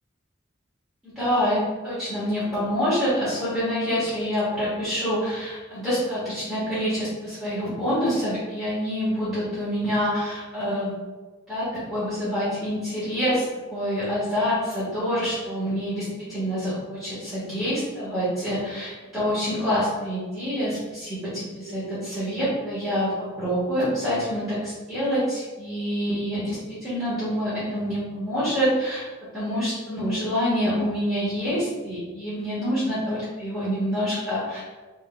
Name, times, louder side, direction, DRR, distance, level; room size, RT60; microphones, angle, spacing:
voice 1, 1.0-1.6 1.8-10.9 11.5-13.4 13.7-29.0 29.3-34.6, equal, ahead, -14 dB, 1.3 m, -26 dB
4.3 x 3.7 x 2.3 m, 1.3 s
head